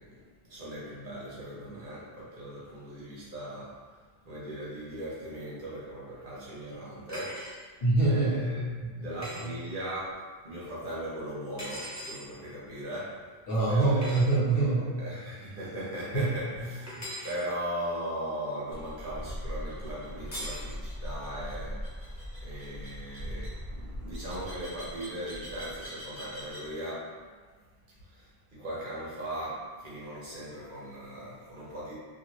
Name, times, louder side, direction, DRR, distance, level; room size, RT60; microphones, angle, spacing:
voice 1, 0.0-4.0 4.2-7.7 8.1-8.6 8.9-13.4 13.7-14.2 15.0-27.1 28.0-31.9, right 1 dB, 60° right, -8 dB, 1.1 m, -39 dB
sound 1, 7.1-7.6 9.2-9.4 11.6-12.2 14.0-14.2 16.9-17.4 20.3-20.7, equal, 20° left, 0.7 m, -39 dB
voice 2, 7.8-9.1 9.4-9.5 13.5-15.0 16.1-16.3 17.0-17.1, right 2 dB, 70° left, -7 dB, 1.1 m, -25 dB
sound 2, 18.7-26.7, equal, 40° right, 0.8 m, -40 dB
2.8 x 2.5 x 3.0 m, 1.5 s
omnidirectional pair, 1.0 m